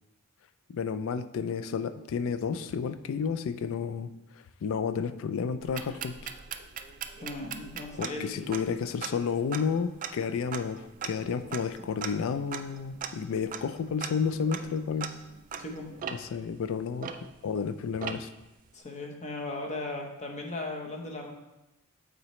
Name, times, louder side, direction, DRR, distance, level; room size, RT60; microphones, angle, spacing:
voice 1, 0.7-6.2 8.0-15.1 16.1-18.3, left 6 dB, 65° left, 12 dB, 0.3 m, -31 dB
sound 1, 5.6-17.6 18.0-18.5, right 7 dB, 40° right, 0.3 m, -40 dB
voice 2, 7.2-8.5 15.6-15.9 18.7-21.3, left 2 dB, 35° left, 2 dB, 0.8 m, -37 dB
8.5 x 3.9 x 3.1 m, 0.96 s
head